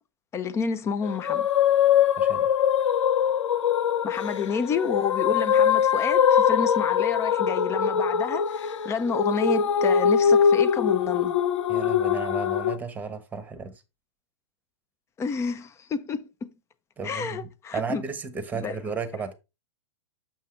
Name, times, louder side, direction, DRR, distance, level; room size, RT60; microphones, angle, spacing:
voice 1, 0.3-1.5 4.0-11.3 15.2-16.5 17.0-18.0 18.5-18.8, left 5 dB, 20° left, 0.6 m, -30 dB
sound 1, 1.0-12.8, left 8 dB, 85° left, 0.6 m, -22 dB
voice 2, 2.2-2.5 11.7-13.7 17.0-19.3, right 5 dB, 10° right, 1.1 m, -34 dB
7.4 x 5.6 x 3.3 m
hypercardioid pair, 125°, 15 cm